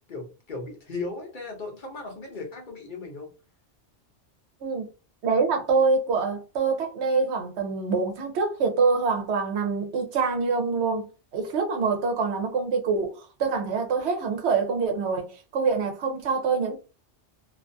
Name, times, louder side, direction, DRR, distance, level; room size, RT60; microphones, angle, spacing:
voice 1, 0.1-3.3, left 3 dB, 50° left, 0.7 m, -36 dB
voice 2, 5.2-11.1 11.3-16.8, right 4 dB, 70° right, 0.9 m, -25 dB
2.4 x 2.3 x 2.5 m
omnidirectional pair, 1.2 m